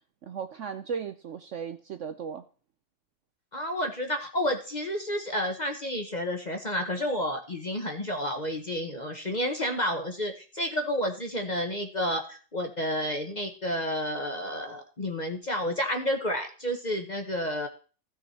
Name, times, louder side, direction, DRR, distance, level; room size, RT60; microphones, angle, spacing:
voice 1, 0.2-2.4, right 6 dB, 70° right, 10 dB, 0.7 m, -36 dB
voice 2, 3.5-17.7, equal, 30° left, 5 dB, 0.9 m, -30 dB
15.0 x 6.3 x 4.2 m, 0.39 s
omnidirectional pair, 1.9 m